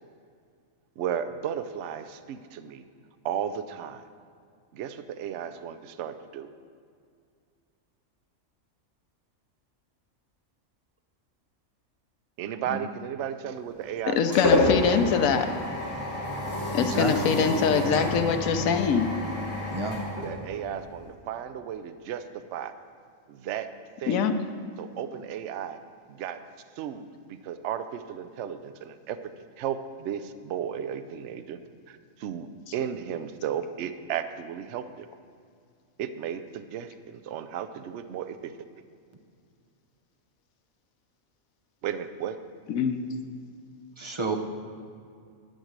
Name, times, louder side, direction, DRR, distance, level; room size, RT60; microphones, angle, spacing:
voice 1, 1.0-2.8 3.2-4.0 4.7-6.5 12.4-15.4 20.2-22.7 23.3-23.7 24.0-24.3 24.8-25.8 26.1-26.4 26.8-29.2 29.6-31.6 31.9-35.1 36.0-38.5 41.8-42.4, right 9 dB, 70° right, 10 dB, 0.8 m, -34 dB
sound 1, 13.6-21.0, left 1 dB, 10° left, 2.8 m, -29 dB
voice 2, 14.1-15.5 16.7-19.1 24.1-24.3 42.7-43.0, left 6 dB, 90° left, 8 dB, 1.1 m, -23 dB
voice 3, 16.8-17.2 19.7-20.0 44.0-44.4, right 2 dB, 30° right, 3 dB, 0.6 m, -30 dB
11.5 x 6.1 x 6.6 m, 2.3 s
omnidirectional pair, 1.4 m